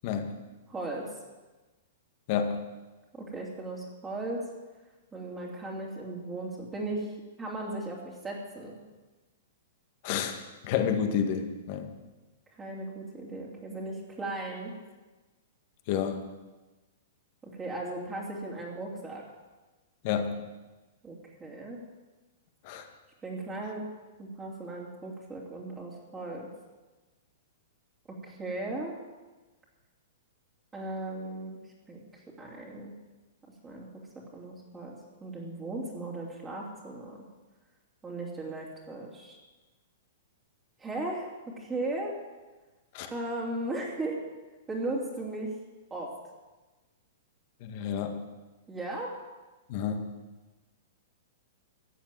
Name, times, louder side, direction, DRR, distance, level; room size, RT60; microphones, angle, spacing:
voice 1, 0.7-1.1 3.1-4.5 5.1-7.1 7.4-8.8 12.6-14.7 17.5-19.2 21.0-21.8 23.2-23.9 24.2-26.5 28.2-29.0 30.7-31.6 31.9-32.0 32.4-32.9 33.6-33.9 34.3-34.9 35.2-37.2 38.0-39.4 40.8-42.1 43.1-44.2 44.7-45.5 45.9-46.1 48.7-49.1, right 2 dB, 15° right, -4 dB, 3.1 m, -36 dB
voice 2, 2.3-2.6 10.0-10.4 10.6-11.9 15.9-16.3 20.0-20.4 22.6-22.9 42.9-43.1 47.6-48.2 49.7-50.1, left 7 dB, 50° left, 6 dB, 1.9 m, -30 dB
14.5 x 7.4 x 9.2 m, 1.2 s
hypercardioid pair, 130°, 0 cm